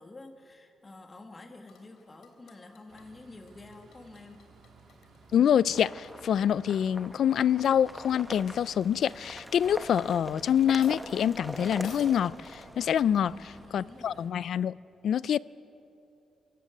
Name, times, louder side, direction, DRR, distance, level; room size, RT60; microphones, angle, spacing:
voice 1, 0.0-4.5 13.1-14.4, left 2 dB, 25° left, 1.8 m, -49 dB
sound 1, 1.7-12.0, left 6 dB, 85° left, 3.4 m, -59 dB
sound 2, 2.9-14.3, right 4 dB, 65° right, 2.9 m, -57 dB
voice 2, 5.3-13.3 13.7-14.7 15.0-15.4, left 9 dB, 65° left, 0.4 m, -26 dB
sound 3, 5.7-13.7, equal, ahead, 1.2 m, -43 dB
24.5 x 15.5 x 8.3 m
cardioid pair, 140°, 0 cm